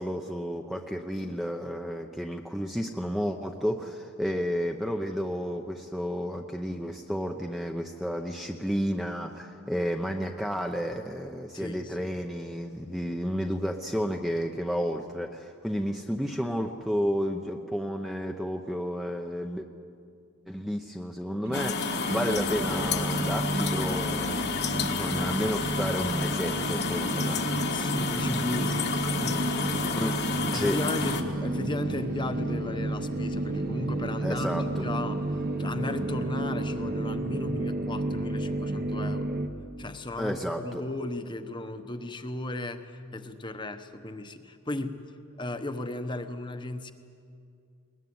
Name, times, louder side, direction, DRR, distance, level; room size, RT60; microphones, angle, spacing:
voice 1, 0.0-19.7 20.5-27.5 30.0-30.2 30.5-30.8 34.2-34.8 40.2-40.8, equal, ahead, 3 dB, 0.7 m, -31 dB
voice 2, 11.5-12.2 27.7-29.5 30.5-35.2 35.6-39.3 39.8-45.1 45.4-46.9, left 2 dB, 20° left, 8 dB, 1.0 m, -36 dB
sound 1, 21.4-39.5, right 1 dB, 45° right, 1.1 m, -31 dB
sound 2, 21.5-31.2, left 5 dB, 45° left, 1.4 m, -31 dB
21.0 x 20.0 x 9.5 m, 2.4 s
head